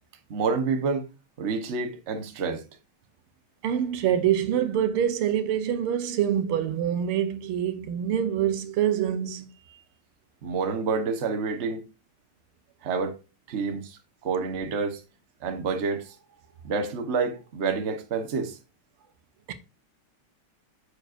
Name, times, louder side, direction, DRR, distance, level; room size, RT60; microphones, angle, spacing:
voice 1, 0.3-1.1 1.4-2.6 9.7-9.8 10.4-11.8 12.8-13.2 13.5-15.0 15.4-16.2 16.6-18.6, right 4 dB, 40° right, 1.1 m, -28 dB
voice 2, 3.6-9.5 19.5-19.6, right 10 dB, 85° right, 1.7 m, -25 dB
9.3 x 6.6 x 2.5 m
omnidirectional pair, 2.4 m